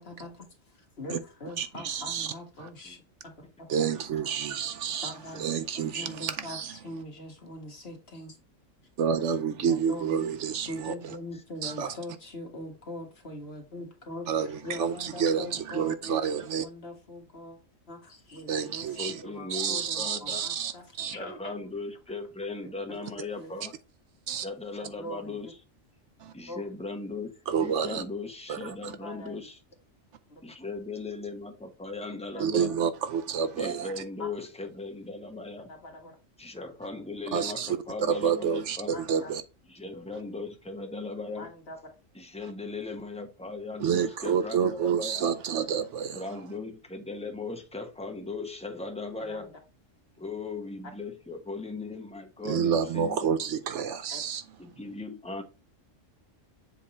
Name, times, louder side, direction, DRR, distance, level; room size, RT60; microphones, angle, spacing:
voice 1, 0.0-3.7 5.0-6.6 6.8-8.4 9.6-10.3 10.7-17.6 17.9-21.5 23.4-23.5 24.8-25.5 26.5-26.7 29.0-29.4 30.3-30.4 32.3-32.4 34.2-34.3 35.7-36.2 38.9-39.3 41.4-41.8 49.2-49.4 54.1-54.2, left 1 dB, 50° left, 1.8 m, -42 dB
voice 2, 1.6-2.3 2.6-2.7 3.7-5.1 5.4-6.7 9.0-10.9 11.6-12.0 14.3-16.7 18.5-19.2 19.5-21.1 24.3-24.5 26.2-26.3 27.5-28.0 28.5-28.9 32.4-33.9 37.3-39.4 43.8-46.2 52.4-54.4, right 7 dB, 70° right, 0.9 m, -29 dB
voice 3, 19.0-20.4 21.0-23.7 24.4-25.6 26.3-27.3 27.6-29.6 30.4-32.7 33.6-35.7 36.4-39.0 39.7-41.5 42.1-45.3 46.1-49.5 50.2-53.3 54.6-55.4, left 3 dB, 5° left, 1.0 m, -38 dB
7.4 x 3.6 x 4.2 m
omnidirectional pair, 1.3 m